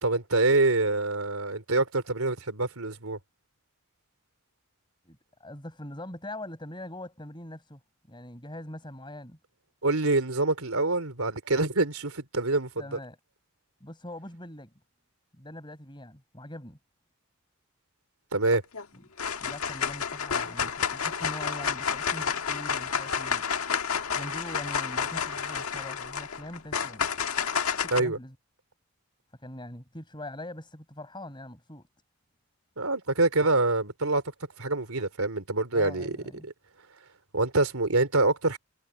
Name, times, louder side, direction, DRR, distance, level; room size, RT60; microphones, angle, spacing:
voice 1, 0.0-3.2 9.8-13.0 18.3-18.6 27.9-28.2 32.8-34.2 34.6-36.2 36.4-36.5 37.3-38.6, right 2 dB, 80° right, 3.2 m, -25 dB
voice 2, 5.1-7.8 8.1-9.4 12.8-13.2 13.8-14.7 15.4-16.8 19.4-23.4 24.1-27.0 27.8-28.3 29.4-31.9 35.7-36.5, left 1 dB, 20° left, 5.5 m, -42 dB
sound 1, 18.5-18.8 19.2-28.0, left 6 dB, 80° left, 1.6 m, -30 dB
head